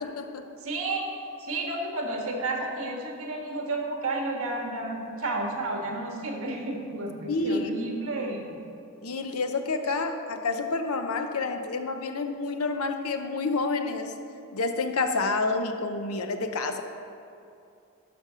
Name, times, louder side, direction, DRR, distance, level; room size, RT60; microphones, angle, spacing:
voice 1, 0.0-0.5 7.3-7.7 9.0-14.1 14.5-16.8, left 3 dB, 85° left, 7 dB, 0.7 m, -29 dB
voice 2, 0.6-8.5, right 2 dB, 75° right, 1 dB, 1.4 m, -31 dB
12.0 x 5.3 x 5.0 m, 2.6 s
head